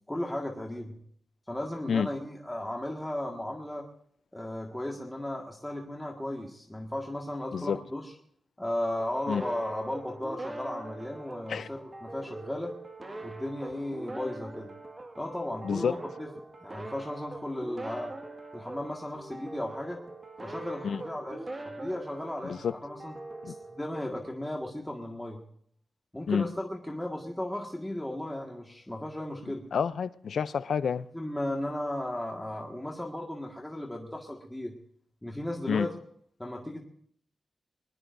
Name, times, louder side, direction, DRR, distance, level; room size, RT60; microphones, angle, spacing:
voice 1, 0.1-1.0 1.5-3.9 4.3-8.1 8.6-12.7 13.2-14.7 15.2-16.3 16.6-18.1 18.5-20.0 20.4-21.4 21.6-23.2 23.5-25.4 26.1-29.7 31.1-34.7 35.2-36.0 36.4-36.8, left 1 dB, 10° left, 1.8 m, -35 dB
sound 1, 9.0-24.4, right 2 dB, 30° right, 1.9 m, -43 dB
voice 2, 15.6-16.0 20.8-21.0 22.4-22.7 23.4-23.5 26.3-26.5 29.7-31.1 35.7-35.9, left 7 dB, 80° left, 0.5 m, -28 dB
23.0 x 20.0 x 2.7 m
wide cardioid pair, 105°, 0 cm